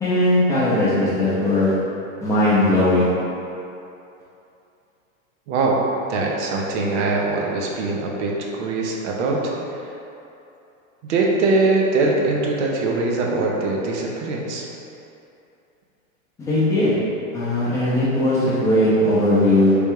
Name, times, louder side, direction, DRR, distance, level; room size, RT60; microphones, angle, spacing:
voice 1, 0.0-1.7 2.2-3.1 16.4-17.0 17.3-19.8, left 1 dB, 10° left, -10 dB, 0.6 m, -18 dB
voice 2, 5.5-9.9 11.1-14.7, right 3 dB, 55° right, -1 dB, 0.7 m, -22 dB
3.5 x 2.4 x 4.4 m, 2.8 s
supercardioid pair, 150°, 41 cm